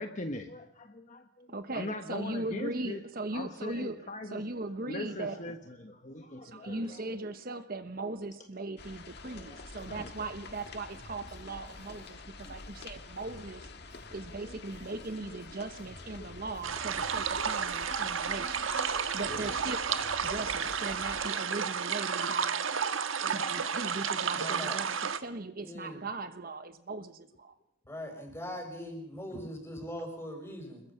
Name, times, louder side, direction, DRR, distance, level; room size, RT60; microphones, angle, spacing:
voice 1, 0.0-1.5 1.7-3.0 3.3-4.4 4.9-7.0 9.3-10.1 12.4-12.5 14.5-14.6 16.2-16.3 18.2-19.6 20.3-20.4 23.2-23.5 29.3-29.4, left 1 dB, 35° left, 1.3 m, -42 dB
voice 2, 1.5-5.6 6.4-13.7 14.1-18.7 19.1-22.9 23.2-27.5, right 2 dB, 45° right, 1.0 m, -39 dB
sound 1, 8.8-21.3, left 3 dB, 50° left, 1.8 m, -48 dB
sound 2, 9.8-15.1 15.4-18.1 18.4-21.5, equal, 20° right, 7.6 m, -54 dB
sound 3, 16.6-25.2, right 6 dB, 75° right, 1.4 m, -32 dB
voice 3, 24.3-24.8 25.6-26.0 27.9-30.8, equal, 10° left, 5.7 m, -41 dB
26.5 x 21.5 x 5.8 m
head